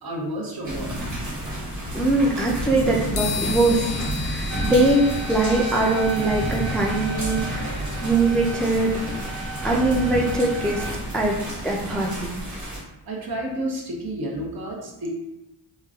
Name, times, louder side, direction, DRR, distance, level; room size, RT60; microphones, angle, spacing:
voice 1, 0.0-1.1 13.0-15.1, right 1 dB, 55° right, -1 dB, 0.8 m, -31 dB
sound 1, 0.6-12.8, equal, 40° right, 1.2 m, -30 dB
voice 2, 1.9-3.9 4.2-7.7 8.0-9.0 9.6-10.8 11.1-11.4 11.6-12.3, right 2 dB, ahead, -2 dB, 0.3 m, -22 dB
sound 2, 3.2-10.8, left 7 dB, 65° left, 0.6 m, -37 dB
sound 3, 4.5-10.9, right 4 dB, 90° right, 1.1 m, -35 dB
3.1 x 2.3 x 2.3 m, 0.92 s
cardioid pair, 70°, 43 cm